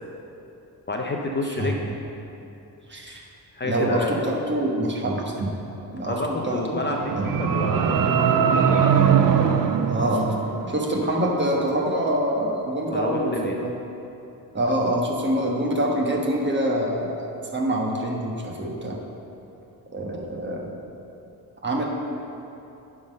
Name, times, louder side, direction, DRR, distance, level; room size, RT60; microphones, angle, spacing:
voice 1, 0.9-1.9 3.1-3.2 3.5-4.2 6.0-8.0 8.5-8.9 12.9-13.6, left 2 dB, 30° left, 0 dB, 0.6 m, -29 dB
voice 2, 2.9-3.2 3.7-5.5 5.9-6.2 6.4-6.8 7.2-7.3 9.9-10.3 10.7-13.7 14.5-19.0 19.9-20.7 21.6-21.8, right 1 dB, 30° right, -1 dB, 1.2 m, -25 dB
sound 1, 6.8-11.0, right 7 dB, 55° right, 0.5 m, -21 dB
9.5 x 3.8 x 6.4 m, 2.8 s
cardioid pair, 105°, 39 cm